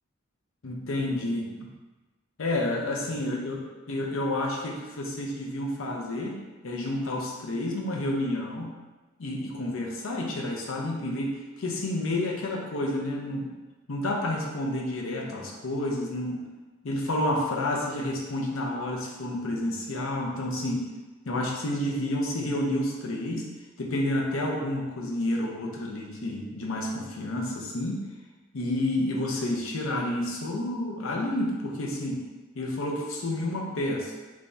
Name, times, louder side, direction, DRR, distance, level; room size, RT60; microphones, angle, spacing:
voice 1, 0.6-1.7 2.4-3.6 3.9-6.4 6.6-8.7 9.2-13.5 13.9-16.4 16.8-20.8 21.3-23.5 23.8-28.0 28.5-32.2 32.5-34.1, left 1 dB, 75° left, -1 dB, 0.6 m, -30 dB
3.4 x 3.2 x 2.6 m, 1.2 s
head